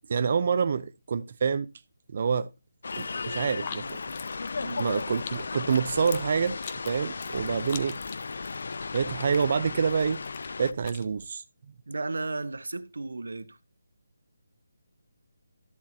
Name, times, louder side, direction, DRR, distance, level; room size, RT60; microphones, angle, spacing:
voice 1, 0.1-1.7 2.1-2.5 3.0-4.0 4.8-6.6 6.9-8.0 8.3-8.4 8.9-10.2 10.6-11.4, right 6 dB, 40° right, 0.6 m, -27 dB
sound 1, 2.8-10.7, left 4 dB, 60° left, 0.4 m, -35 dB
sound 2, 2.9-11.3, left 7 dB, 25° left, 1.1 m, -46 dB
voice 2, 11.9-13.6, right 3 dB, 85° right, 1.3 m, -34 dB
13.5 x 7.5 x 2.8 m
hypercardioid pair, 170°, 0 cm